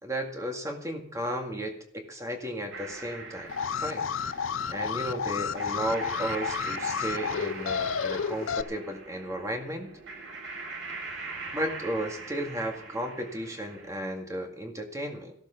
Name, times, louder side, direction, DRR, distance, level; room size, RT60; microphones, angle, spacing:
voice 1, 0.0-3.5 3.8-4.0 4.7-9.9 11.5-15.3, right 1 dB, 15° right, 3 dB, 2.0 m, -34 dB
sound 1, 2.7-13.9, right 3 dB, 65° right, 7.1 m, -42 dB
Alarm, 3.5-8.6, left 6 dB, 80° left, 0.6 m, -31 dB
15.0 x 12.0 x 5.9 m, 0.66 s
head